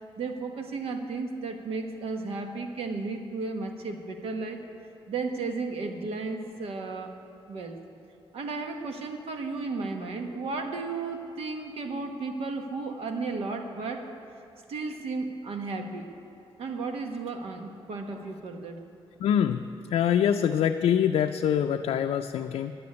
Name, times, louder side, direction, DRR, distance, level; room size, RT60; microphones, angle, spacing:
voice 1, 0.2-4.6 5.1-7.2 7.5-7.8 8.3-14.1 14.7-16.1 16.6-18.8, right 3 dB, 75° right, 5 dB, 1.2 m, -34 dB
voice 2, 19.2-19.6 19.9-22.7, left 9 dB, 75° left, 5 dB, 0.4 m, -24 dB
10.5 x 8.6 x 9.5 m, 2.7 s
cardioid pair, 115°, 10 cm